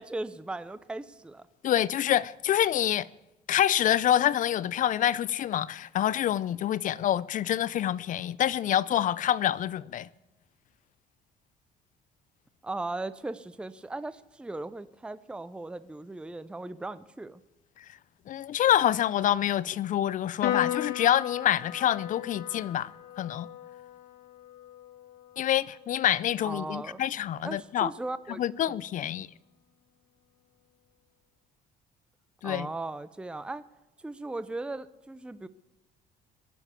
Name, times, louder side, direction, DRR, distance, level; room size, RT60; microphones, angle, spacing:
voice 1, 0.0-1.5 12.6-17.4 26.4-27.0 27.4-28.8 32.4-33.7 34.0-35.5, right 2 dB, 5° right, 0.5 m, -37 dB
voice 2, 1.6-3.1 3.5-10.1 18.3-22.9 23.2-23.5 25.4-27.9 28.4-29.3 32.4-32.7, left 11 dB, 50° left, 0.5 m, -26 dB
Piano, 20.4-27.1, left 12 dB, 70° left, 1.3 m, -37 dB
21.5 x 7.2 x 8.3 m
cardioid pair, 110°, 17 cm